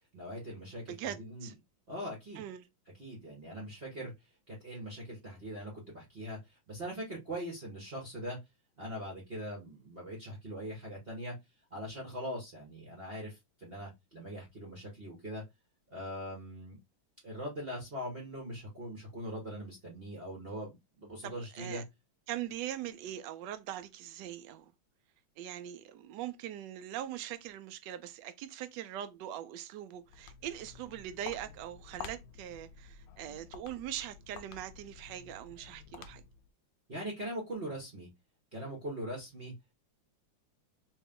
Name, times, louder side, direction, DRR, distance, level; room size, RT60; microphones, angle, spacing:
voice 1, 0.1-1.5 1.9-2.5 3.0-4.1 4.5-8.4 8.8-11.3 11.7-15.4 15.9-16.8 17.2-21.8 36.9-38.1 38.5-39.5, equal, 35° right, 1.2 m, -41 dB
voice 2, 0.9-1.5 2.4-2.7 21.2-21.8 22.3-24.7 25.4-36.2, right 11 dB, 70° right, 1.1 m, -41 dB
Walk footsteps, 29.9-36.5, left 7 dB, 75° left, 1.2 m, -50 dB
3.2 x 2.9 x 3.6 m
omnidirectional pair, 2.2 m